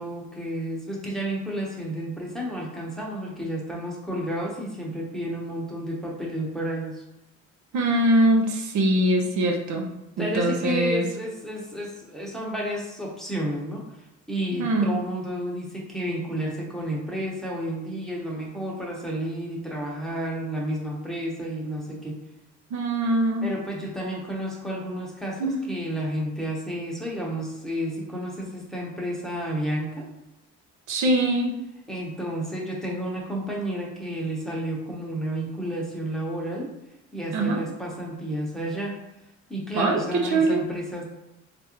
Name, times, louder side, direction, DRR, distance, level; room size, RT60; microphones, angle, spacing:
voice 1, 0.0-7.0 10.2-13.8 14.3-22.2 23.4-30.1 31.9-36.7 37.1-39.0 39.5-41.0, equal, ahead, -4 dB, 0.9 m, -31 dB
voice 2, 7.7-9.9 10.2-11.1 14.6-15.0 22.7-23.5 25.4-25.6 30.9-31.6 37.3-37.6 39.7-40.6, right 1 dB, 70° right, 2 dB, 0.7 m, -22 dB
3.3 x 2.5 x 2.9 m, 0.89 s
cardioid pair, 90°, 30 cm